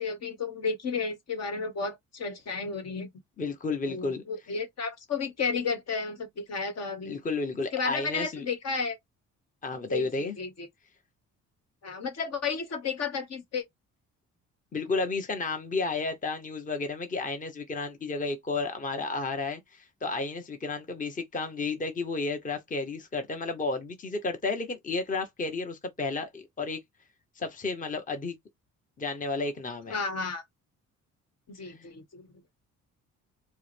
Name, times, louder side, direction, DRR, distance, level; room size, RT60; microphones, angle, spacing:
voice 1, 0.0-3.1 3.9-7.2 7.7-9.0 9.9-10.7 11.8-13.6 29.9-30.4 31.5-32.3, left 4 dB, 60° left, 1.4 m, -32 dB
voice 2, 3.4-4.2 7.0-8.4 9.6-10.4 14.7-26.8 27.4-28.3 29.0-30.0 31.6-31.9, left 3 dB, 25° left, 0.9 m, -32 dB
4.6 x 2.1 x 3.2 m
cardioid pair, 90°, 30 cm